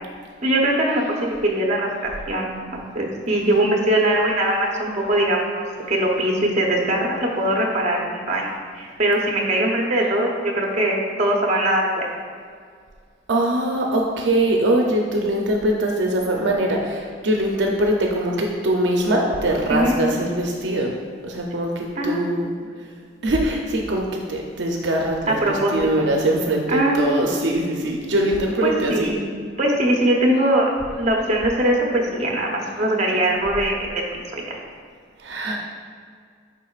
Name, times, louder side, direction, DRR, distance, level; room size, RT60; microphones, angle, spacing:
voice 1, 0.4-2.5 2.9-12.1 19.7-20.0 22.0-22.3 25.3-26.0 26.7-27.0 28.6-29.2 29.6-34.6, right 1 dB, 35° right, -1 dB, 0.9 m, -21 dB
voice 2, 13.3-20.9 21.2-22.5 23.2-29.1 35.2-35.6, right 1 dB, 70° right, 0 dB, 0.6 m, -22 dB
7.4 x 5.3 x 2.4 m, 2.1 s
head